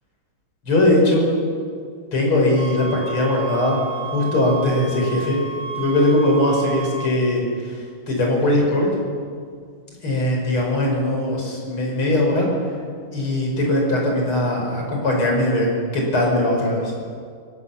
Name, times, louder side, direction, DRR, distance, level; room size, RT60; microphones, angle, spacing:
voice 1, 0.7-1.3 2.1-3.8 4.1-5.4 5.8-7.8 8.1-8.9 10.0-12.5 13.1-16.9, left 1 dB, 75° left, -1 dB, 6.0 m, -20 dB
sound 1, 2.6-7.1, right 5 dB, 80° right, 3.4 m, -32 dB
22.5 x 17.0 x 7.1 m, 2.1 s
omnidirectional pair, 2.4 m